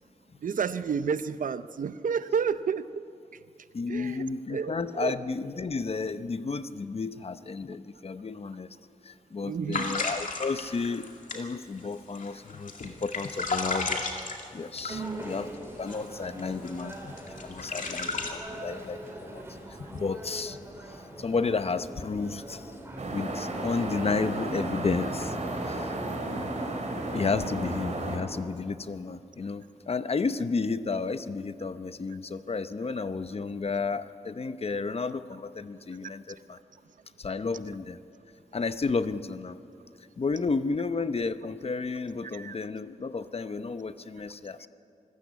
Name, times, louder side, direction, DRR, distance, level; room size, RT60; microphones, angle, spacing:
voice 1, 0.4-3.0 3.9-4.2 4.5-5.1 9.4-10.0 14.9-15.3 26.2-26.4 42.3-42.5, right 6 dB, 90° right, 13 dB, 0.6 m, -31 dB
voice 2, 3.7-8.7 9.0-14.0 14.5-15.5 15.8-17.2 17.4-19.4 19.8-20.6 20.9-22.7 23.1-25.4 25.6-26.0 27.1-36.6 37.2-38.0 38.5-39.6 40.2-44.7, left 4 dB, 50° left, 12 dB, 0.8 m, -32 dB
sound 1, 9.7-15.4 15.9-16.1 16.4-18.3, left 3 dB, 75° left, 2.4 m, -33 dB
sound 2, 14.9-23.1, equal, 20° right, 4.0 m, -43 dB
sound 3, 23.0-28.2, right 2 dB, 60° right, 3.6 m, -33 dB
25.5 x 15.0 x 8.2 m, 2.5 s
wide cardioid pair, 105°, 13 cm